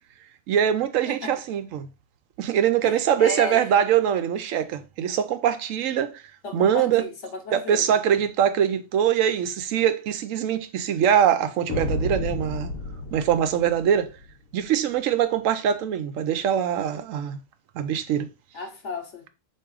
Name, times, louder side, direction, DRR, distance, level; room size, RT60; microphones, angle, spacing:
voice 1, 0.5-1.9 2.4-6.2 6.5-7.0 7.5-12.7 13.1-14.1 14.5-17.4 17.7-18.3, right 9 dB, 80° right, 1.0 m, -23 dB
voice 2, 1.0-1.4 2.8-3.7 6.4-7.9 18.5-19.3, left 4 dB, 65° left, 1.3 m, -34 dB
sound 1, 11.7-14.3, left 2 dB, 85° left, 1.1 m, -31 dB
3.5 x 3.0 x 4.6 m
omnidirectional pair, 1.4 m